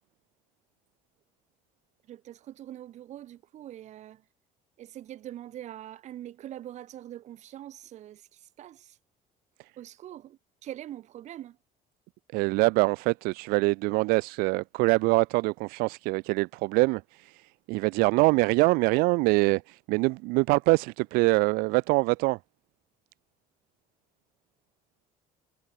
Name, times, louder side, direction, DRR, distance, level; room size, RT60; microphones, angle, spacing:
voice 1, 2.1-4.2 4.8-9.0 9.8-11.6, right 12 dB, 50° right, 4.4 m, -43 dB
voice 2, 12.3-17.3 17.7-22.4, right 25 dB, 90° right, 0.7 m, -24 dB
cardioid pair, 150°, 15 cm